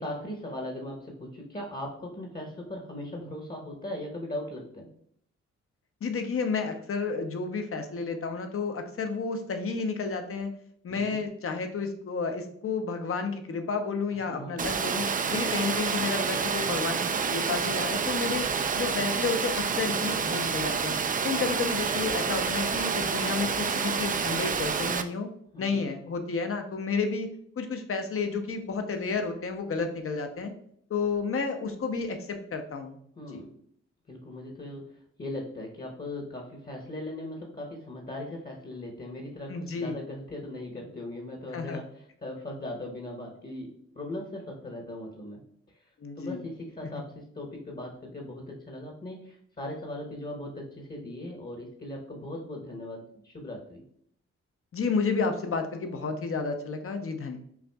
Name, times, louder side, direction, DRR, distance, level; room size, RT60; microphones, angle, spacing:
voice 1, 0.0-4.9 10.9-11.2 14.3-14.6 25.5-25.9 33.2-33.5 34.1-45.4 46.2-53.8, left 1 dB, 30° left, 0 dB, 1.0 m, -39 dB
voice 2, 6.0-10.5 10.8-18.5 18.8-21.0 21.2-25.3 25.6-27.3 27.6-30.5 30.9-33.0 33.3-33.4 39.5-40.0 41.5-41.8 46.0-46.4 46.8-46.9 54.7-57.4, left 4 dB, 45° left, 6 dB, 0.7 m, -31 dB
Water, 14.6-25.0, right 6 dB, 30° right, 0.4 m, -28 dB
5.7 x 2.5 x 2.3 m, 0.67 s
supercardioid pair, 45°, 30 cm